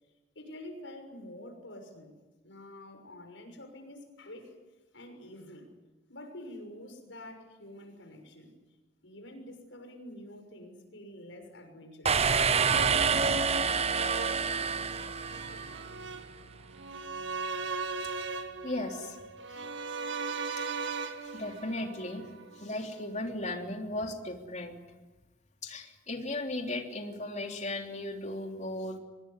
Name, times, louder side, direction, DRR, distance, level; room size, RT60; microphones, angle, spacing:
voice 1, 0.3-2.1 2.4-4.6 4.9-5.7 6.1-8.5 9.0-12.3, left 1 dB, 85° left, 6 dB, 6.5 m, -47 dB
sound 1, 12.0-15.8, right 5 dB, 35° right, 0.8 m, -27 dB
sound 2, 12.7-22.8 23.1-23.2, right 4 dB, 75° right, 2.2 m, -38 dB
voice 2, 18.6-19.2 19.5-19.6 20.6-22.3 22.5-24.8 25.6-29.0, left 2 dB, 40° left, 3 dB, 3.5 m, -37 dB
25.0 x 20.5 x 9.9 m, 1.1 s
head